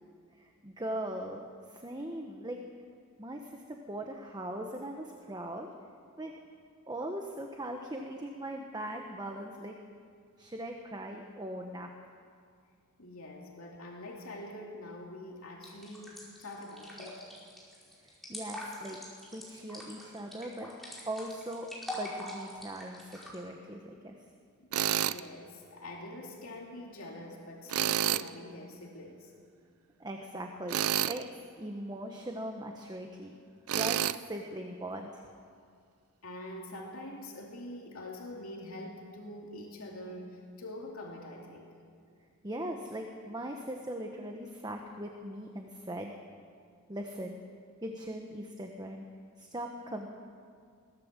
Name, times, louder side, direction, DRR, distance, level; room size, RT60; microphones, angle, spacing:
voice 1, 0.4-2.6 3.2-5.7 6.2-6.3 6.9-9.8 10.4-11.9 18.3-19.0 19.3-20.7 21.0-21.7 22.0-24.1 30.0-31.3 31.6-33.3 33.7-35.2 42.4-46.1 46.9-47.4 47.8-49.0 49.4-50.1, right 1 dB, 20° right, 3 dB, 1.3 m, -40 dB
voice 2, 13.0-17.2 24.6-29.3 36.2-41.7, left 1 dB, 75° left, -1 dB, 2.8 m, -45 dB
sound 1, 15.6-23.4, left 1 dB, ahead, 4.8 m, -44 dB
Tools, 24.7-25.2 27.7-28.3 30.7-31.2 33.7-34.2, right 10 dB, 85° right, 0.5 m, -29 dB
21.5 x 17.0 x 7.5 m, 2.2 s
head